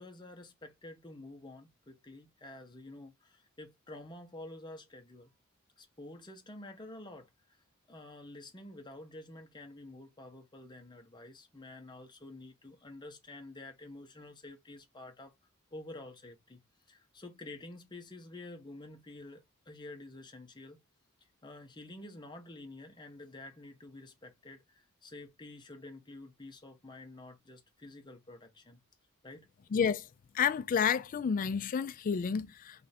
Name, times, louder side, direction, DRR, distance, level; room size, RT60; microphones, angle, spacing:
voice 1, 0.0-5.3 5.8-7.6 7.9-15.3 15.7-16.6 16.9-20.8 21.4-28.8 29.2-29.5, left 2 dB, 20° left, 0.7 m, -49 dB
voice 2, 29.7-30.1 30.3-32.9, left 7 dB, 40° left, 0.3 m, -30 dB
3.2 x 2.5 x 4.0 m
head